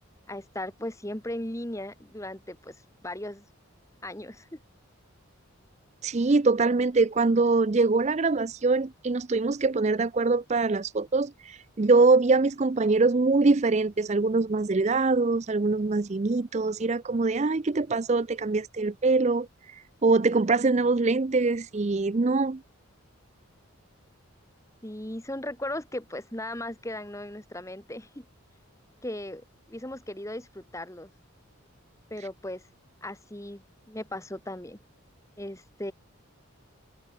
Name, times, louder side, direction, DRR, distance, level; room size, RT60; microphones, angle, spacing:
voice 1, 0.3-2.8 3.0-3.4 4.0-4.6 24.8-28.3 29.0-31.1 32.1-32.6 33.0-34.8 35.4-35.9, left 1 dB, 15° left, 1.6 m, -37 dB
voice 2, 6.0-22.6, right 3 dB, 30° right, 0.5 m, -23 dB
open air
head